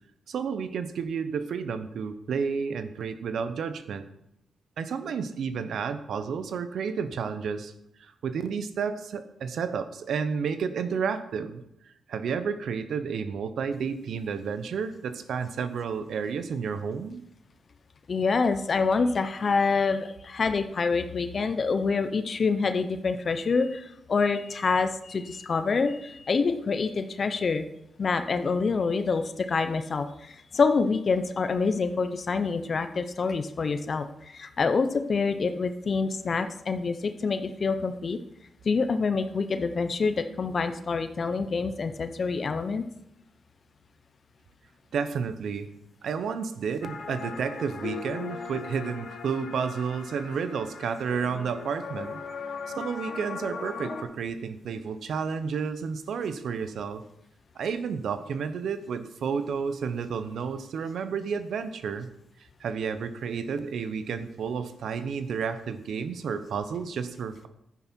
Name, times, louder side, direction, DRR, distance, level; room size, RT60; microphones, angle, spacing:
voice 1, 0.3-4.1 4.8-7.7 8.0-11.6 12.1-17.2 44.9-45.7 46.0-52.2 52.8-57.0 57.5-62.1 62.6-67.5, right 6 dB, 75° right, 11 dB, 0.9 m, -31 dB
voice 2, 18.1-27.7 28.0-38.2 38.6-42.9, left 4 dB, 55° left, 9 dB, 0.9 m, -26 dB
sound 1, 46.8-54.0, left 5 dB, 75° left, 1.8 m, -38 dB
11.0 x 9.8 x 4.5 m, 0.78 s
cardioid pair, 60°, 0 cm